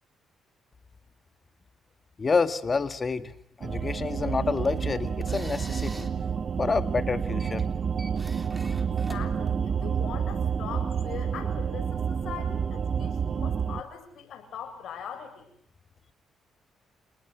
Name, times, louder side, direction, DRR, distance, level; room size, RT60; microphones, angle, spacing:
voice 1, 2.2-6.1 6.6-7.6, left 4 dB, 35° left, 9 dB, 2.0 m, -28 dB
sound 1, 3.6-13.8, right 7 dB, 45° right, 1.2 m, -29 dB
sound 2, 4.4-10.1, right 1 dB, 10° right, 3.5 m, -48 dB
voice 2, 9.1-15.5, left 8 dB, 70° left, 7 dB, 7.3 m, -41 dB
29.5 x 19.5 x 9.4 m, 0.68 s
cardioid pair, 90°, 0 cm